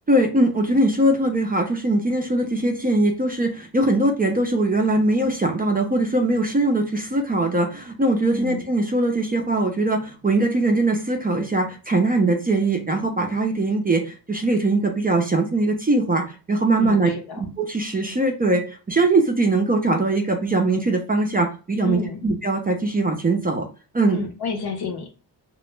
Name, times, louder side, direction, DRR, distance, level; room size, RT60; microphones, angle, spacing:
voice 1, 0.1-17.1 17.4-23.7 23.9-24.2, right 2 dB, 20° right, 3 dB, 0.4 m, -21 dB
voice 2, 8.3-8.7 16.8-17.5 21.8-22.3 24.1-25.3, left 5 dB, 65° left, 4 dB, 0.7 m, -30 dB
2.2 x 2.0 x 3.1 m, 0.34 s
wide cardioid pair, 110°, 42 cm